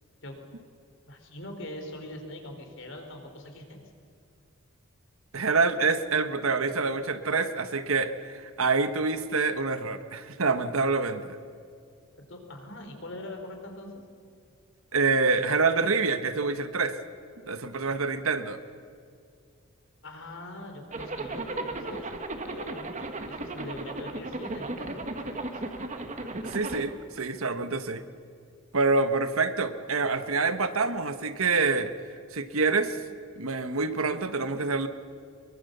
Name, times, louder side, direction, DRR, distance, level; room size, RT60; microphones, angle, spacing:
voice 1, 1.1-3.8 12.3-14.0 20.0-22.1 22.5-25.6, left 1 dB, 60° left, 4 dB, 4.2 m, -42 dB
voice 2, 5.3-11.4 14.9-16.9 17.5-18.6 26.4-28.0 28.7-31.9 32.3-33.0 33.4-34.9, right 4 dB, 75° right, 10 dB, 1.3 m, -26 dB
Zipper (clothing), 20.9-26.8, right 2 dB, 35° right, 1.6 m, -35 dB
24.0 x 23.0 x 6.8 m, 2.3 s
head